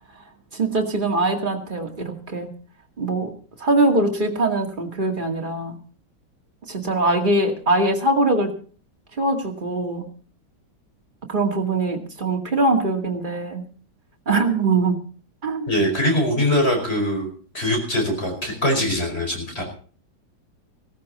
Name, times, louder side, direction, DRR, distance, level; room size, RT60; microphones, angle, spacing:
voice 1, 0.5-2.5 3.0-3.3 3.6-5.8 6.7-8.5 9.2-10.1 11.3-13.6 14.3-15.0 15.4-15.7, right 2 dB, 25° right, 2 dB, 2.2 m, -22 dB
voice 2, 15.7-17.3 17.5-19.6, left 1 dB, 30° left, 3 dB, 5.2 m, -22 dB
17.0 x 14.0 x 4.1 m, 0.42 s
omnidirectional pair, 2.1 m